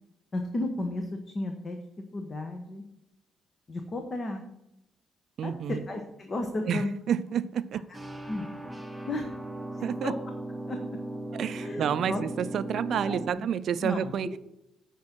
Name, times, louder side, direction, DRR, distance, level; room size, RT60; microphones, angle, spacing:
voice 1, 0.3-1.1 1.3-1.8 2.1-2.8 3.7-4.4 5.4-5.5 5.9-6.9 8.2-8.5 9.1-9.3 9.7-10.1 10.7-10.8 11.6-12.2 12.9-13.4 13.8-14.1, left 2 dB, 35° left, 1.2 m, -33 dB
voice 2, 5.4-5.8 6.6-7.9 9.8-10.1 11.3-14.4, right 8 dB, 65° right, 0.4 m, -30 dB
sound 1, 7.9-13.3, right 1 dB, 5° right, 1.0 m, -37 dB
8.6 x 5.3 x 6.1 m
cardioid pair, 90°, 0 cm